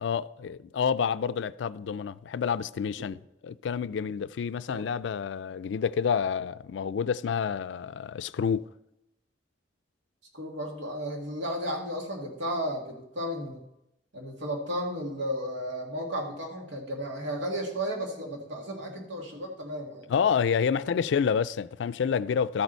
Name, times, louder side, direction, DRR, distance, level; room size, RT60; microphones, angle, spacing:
voice 1, 0.0-8.7 20.1-22.6, left 7 dB, 70° left, 0.3 m, -28 dB
voice 2, 10.3-13.6 14.1-20.1 20.7-20.8, equal, 85° right, 2.1 m, -34 dB
13.0 x 6.7 x 4.5 m
head